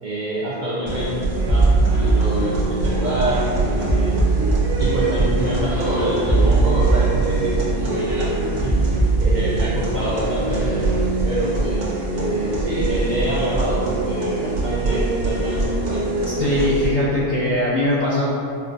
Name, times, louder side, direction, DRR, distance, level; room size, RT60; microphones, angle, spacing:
voice 1, 0.0-4.1 4.8-8.7 9.0-10.9 11.2-16.1, right 1 dB, 60° right, -7 dB, 0.5 m, -26 dB
sound 1, 0.9-16.9, right 2 dB, 90° right, 1.2 m, -23 dB
sound 2, 1.5-11.0, right 3 dB, 5° right, 0.5 m, -21 dB
voice 2, 16.4-18.3, left 1 dB, 60° left, -8 dB, 0.5 m, -20 dB
4.3 x 2.3 x 2.5 m, 2.5 s
omnidirectional pair, 1.2 m